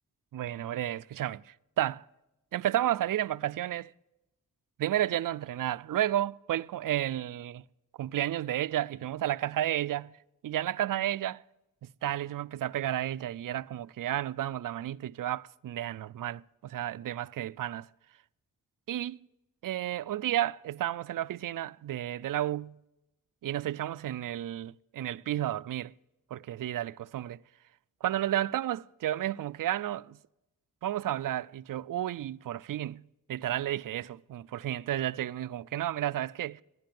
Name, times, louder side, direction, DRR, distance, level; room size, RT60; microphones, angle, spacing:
voice 1, 0.3-2.1 2.5-3.9 4.8-7.6 8.0-10.1 10.4-11.4 11.8-17.9 18.9-19.2 19.6-22.8 23.4-25.9 26.3-27.4 28.0-30.2 30.8-36.6, right 12 dB, 70° right, 0.5 m, -32 dB
16.0 x 11.0 x 7.6 m
wide cardioid pair, 100°, 34 cm